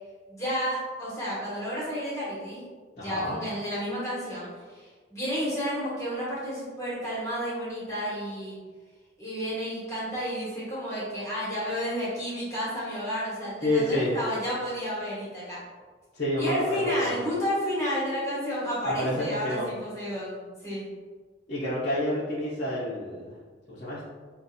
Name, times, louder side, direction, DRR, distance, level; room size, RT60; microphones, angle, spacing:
voice 1, 0.3-2.7 3.0-8.6 9.2-15.6 16.4-20.9, equal, 15° left, -8 dB, 1.3 m, -31 dB
voice 2, 3.0-3.4 13.6-14.2 16.1-17.2 18.8-19.7 21.5-23.3 23.7-24.0, left 1 dB, 40° left, -10 dB, 0.7 m, -29 dB
5.0 x 2.5 x 2.7 m, 1.4 s
head